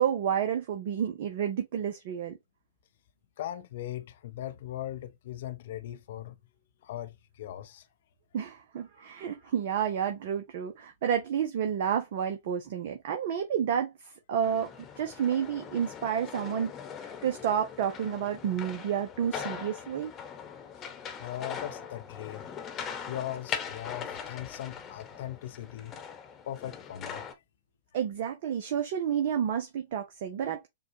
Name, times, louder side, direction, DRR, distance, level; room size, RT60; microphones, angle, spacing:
voice 1, 0.0-2.4 8.3-16.7 17.2-20.1 27.9-30.7, right 8 dB, 55° right, 0.8 m, -30 dB
voice 2, 3.4-6.3 6.8-7.9 21.2-26.0 26.5-27.4, left 12 dB, 60° left, 0.6 m, -39 dB
sound 1, 14.4-27.3, left 7 dB, 30° left, 1.0 m, -41 dB
6.9 x 2.4 x 2.8 m
hypercardioid pair, 110°, 0 cm